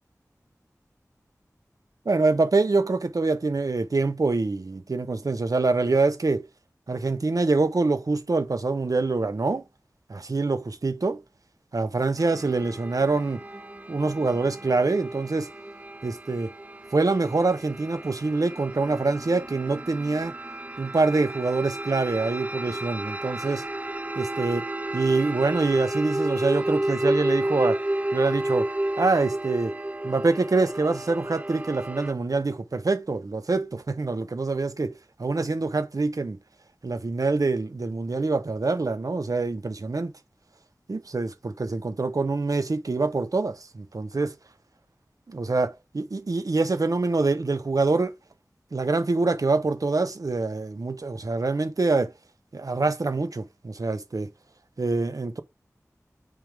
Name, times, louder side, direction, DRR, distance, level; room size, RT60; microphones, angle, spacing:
voice 1, 2.1-6.5 6.9-9.6 10.1-11.2 11.7-13.4 13.9-15.5 16.0-16.5 16.9-20.3 20.8-23.7 24.2-24.7 24.9-27.8 28.1-28.7 29.0-29.7 30.0-36.4 36.8-40.1 40.9-44.3 45.3-48.1 48.7-52.1 52.5-54.3 54.8-55.4, right 3 dB, 70° right, 0.8 m, -25 dB
sound 1, 12.2-32.1, right 1 dB, 25° right, 0.6 m, -32 dB
9.2 x 3.5 x 3.4 m
wide cardioid pair, 50°, 6 cm